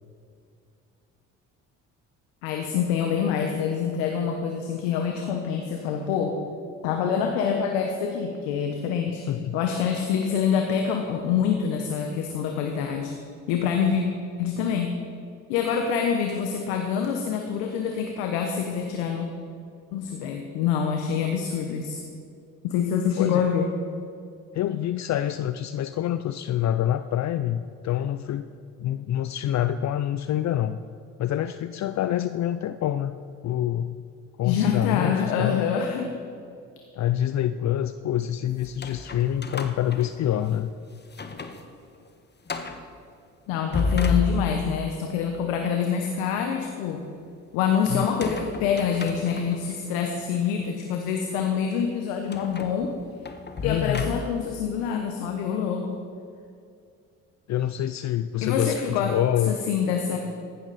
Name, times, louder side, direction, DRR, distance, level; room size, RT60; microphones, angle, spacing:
voice 1, 2.4-6.3 6.8-9.2 9.5-13.1 13.5-14.0 14.4-15.0 15.5-19.3 19.9-22.0 22.6-23.7 34.4-36.2 43.5-47.0 47.5-52.9 53.6-56.0 58.4-59.1 59.5-60.2, left 7 dB, 85° left, 4 dB, 1.1 m, -26 dB
voice 2, 9.3-9.6 23.2-23.5 24.5-28.5 28.8-30.8 31.2-33.1 33.4-34.0 34.4-35.6 37.0-40.7 47.9-48.1 53.6-54.2 57.5-59.6, left 11 dB, 50° left, 12 dB, 0.5 m, -26 dB
sound 1, 38.6-40.7 41.1-41.6 42.0-42.1 42.5-42.9 43.5-44.8 48.0-49.8 50.4-50.5 52.3-54.5, left 4 dB, 30° left, 1.4 m, -32 dB
15.0 x 12.0 x 4.2 m, 2.4 s
hypercardioid pair, 60°, 35 cm